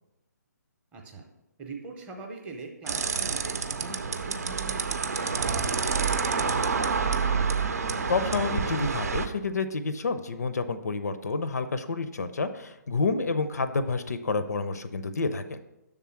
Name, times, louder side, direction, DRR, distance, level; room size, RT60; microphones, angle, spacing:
voice 1, 0.9-1.2 1.6-6.6, right 3 dB, 15° right, 1 dB, 0.7 m, -42 dB
sound 1, 2.9-9.3, right 5 dB, 55° right, 0.6 m, -28 dB
voice 2, 8.1-15.6, left 4 dB, 60° left, 11 dB, 0.5 m, -29 dB
6.7 x 3.7 x 5.7 m, 0.93 s
figure-of-eight pair, 140°, 10 cm